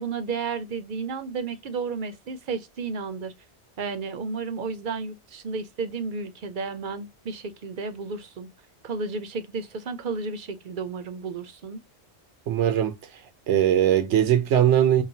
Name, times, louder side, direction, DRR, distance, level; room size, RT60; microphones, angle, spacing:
voice 1, 0.0-3.3 3.8-8.5 8.8-11.8, right 4 dB, 55° right, 0.7 m, -32 dB
voice 2, 12.5-12.9 13.5-15.0, right 10 dB, 90° right, 1.0 m, -20 dB
5.6 x 2.2 x 2.7 m
omnidirectional pair, 1.2 m